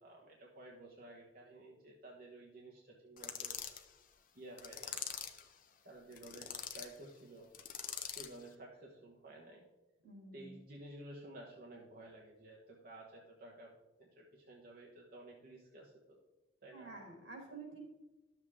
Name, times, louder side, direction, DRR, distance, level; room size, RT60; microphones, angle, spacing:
voice 1, 0.0-3.6 4.3-5.0 5.8-7.5 8.1-9.6 10.3-13.7 14.0-16.2 16.6-16.9, right 1 dB, 50° right, -2 dB, 1.2 m, -53 dB
sound 1, 3.2-3.8 4.6-5.4 6.1-6.9 7.5-8.4, left 9 dB, 45° left, 0.8 m, -43 dB
voice 2, 10.0-10.6 16.7-17.8, right 3 dB, 80° right, 0 dB, 3.5 m, -50 dB
11.5 x 7.3 x 3.7 m, 1.1 s
head